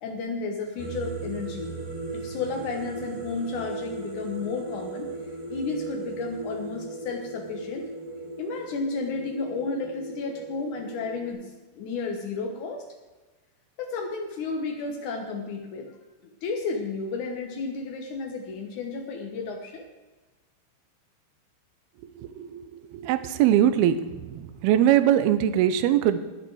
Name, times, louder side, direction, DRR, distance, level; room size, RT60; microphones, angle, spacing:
voice 1, 0.0-1.7 2.1-5.1 5.5-7.8 8.4-12.8 13.8-15.9 16.2-19.8, left 4 dB, 80° left, 2 dB, 1.8 m, -32 dB
sound 1, 0.8-11.3, right 3 dB, 60° right, 5.9 m, -37 dB
voice 2, 22.2-22.6 22.9-24.0 24.3-26.2, right 11 dB, 80° right, 11 dB, 2.3 m, -21 dB
21.0 x 7.2 x 4.8 m, 1.2 s
omnidirectional pair, 5.4 m